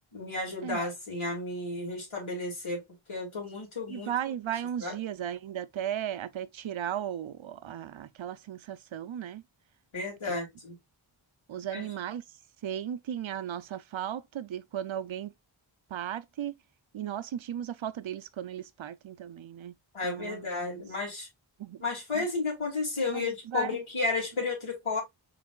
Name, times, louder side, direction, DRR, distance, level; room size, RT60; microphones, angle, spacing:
voice 1, 0.0-2.8 3.1-4.1 4.8-5.0 9.9-10.8 11.7-11.8 19.9-21.3 21.8-25.0, left 3 dB, 85° left, 2.4 m, -32 dB
voice 2, 3.9-9.4 10.2-10.5 11.5-12.2 12.6-15.3 15.9-16.5 16.9-19.7 20.0-20.8 21.6-21.8 22.1-22.3 23.1-23.8, right 10 dB, 75° right, 0.6 m, -36 dB
5.8 x 3.4 x 2.3 m
wide cardioid pair, 50°, 48 cm